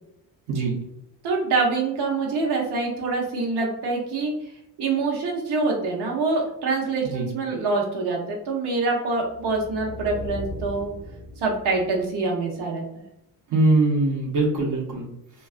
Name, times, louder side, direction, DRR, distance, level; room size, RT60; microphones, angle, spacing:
voice 1, 1.2-4.3 4.8-10.9 11.4-13.1, right 3 dB, 85° right, -1 dB, 0.7 m, -25 dB
sound 1, 9.2-12.2, left 1 dB, 5° left, 0.6 m, -37 dB
voice 2, 13.5-15.1, right 2 dB, 50° right, -1 dB, 0.7 m, -22 dB
2.3 x 2.3 x 2.3 m, 0.82 s
cardioid pair, 155°, 39 cm